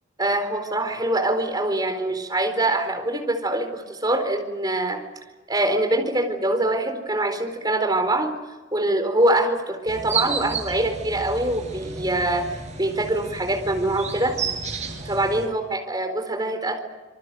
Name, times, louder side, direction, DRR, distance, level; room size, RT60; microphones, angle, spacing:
voice 1, 0.2-5.0 5.5-8.3 8.7-12.5 12.8-14.4 15.1-16.8, right 1 dB, 20° right, 5 dB, 4.3 m, -24 dB
sound 1, 9.9-15.5, right 5 dB, 35° right, 7.0 m, -32 dB
27.0 x 23.5 x 7.8 m, 1.2 s
head